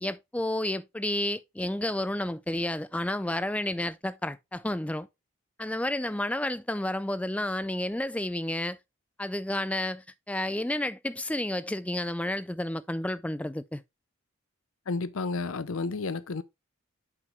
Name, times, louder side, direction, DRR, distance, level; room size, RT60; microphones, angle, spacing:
voice 1, 0.0-5.1 5.6-8.8 9.2-13.8, left 1 dB, 5° left, 0.3 m, -31 dB
voice 2, 14.9-16.4, left 3 dB, 70° left, 0.6 m, -31 dB
8.3 x 5.1 x 3.2 m
head